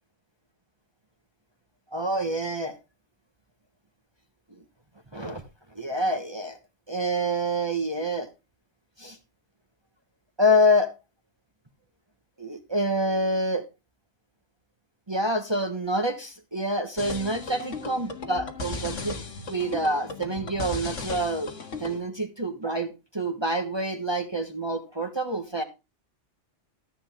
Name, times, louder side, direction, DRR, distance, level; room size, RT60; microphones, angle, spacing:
voice 1, 1.9-2.8 5.1-5.4 5.7-6.6 6.9-8.3 9.0-9.2 10.4-10.9 12.4-13.6 15.1-19.2 19.5-21.5 21.8-25.6, equal, 20° right, 1.2 m, -27 dB
sound 1, 17.0-22.0, left 3 dB, 80° left, 1.9 m, -36 dB
13.5 x 7.8 x 3.6 m
omnidirectional pair, 1.3 m